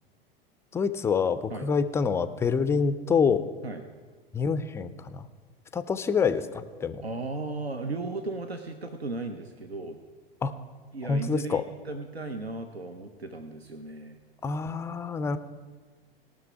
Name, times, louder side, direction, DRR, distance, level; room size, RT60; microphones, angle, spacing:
voice 1, 0.7-3.4 4.3-5.3 5.7-7.0 10.4-10.6 11.0-11.6 14.4-15.4, left 5 dB, 10° left, 12 dB, 0.3 m, -26 dB
voice 2, 7.0-10.0 10.9-14.2, right 3 dB, 85° right, 7 dB, 0.7 m, -36 dB
17.5 x 6.3 x 5.8 m, 1.5 s
figure-of-eight pair, 85°, 30 cm